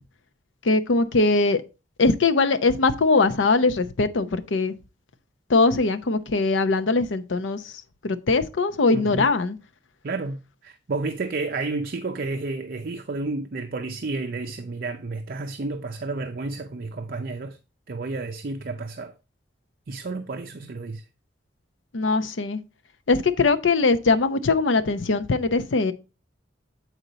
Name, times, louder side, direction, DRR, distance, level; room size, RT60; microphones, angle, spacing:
voice 1, 0.6-1.6 2.0-4.7 5.5-7.7 8.0-9.6 21.9-22.6 23.1-25.9, left 3 dB, 85° left, 0.7 m, -21 dB
voice 2, 8.9-9.2 10.0-17.6 17.9-19.1 19.9-21.0, right 3 dB, 50° right, 0.5 m, -31 dB
8.1 x 4.4 x 3.9 m
head